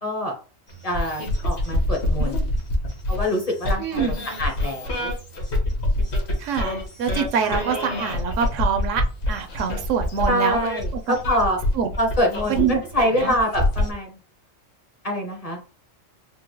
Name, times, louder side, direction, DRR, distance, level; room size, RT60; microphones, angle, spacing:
voice 1, 0.0-0.3 0.8-2.5 3.1-5.1 7.4-7.6 10.3-11.6 12.0-12.6 12.9-14.2 15.0-15.6, left 1 dB, 35° left, 1 dB, 0.7 m, -25 dB
sound 1, 0.7-13.9, left 1 dB, 60° left, 1.3 m, -26 dB
voice 2, 3.8-4.2 6.4-9.0 9.3-10.6 10.9-11.0 11.7-11.9 12.5-13.3, right 7 dB, 75° right, 6 dB, 0.9 m, -25 dB
4.4 x 2.1 x 3.0 m, 0.36 s
omnidirectional pair, 1.3 m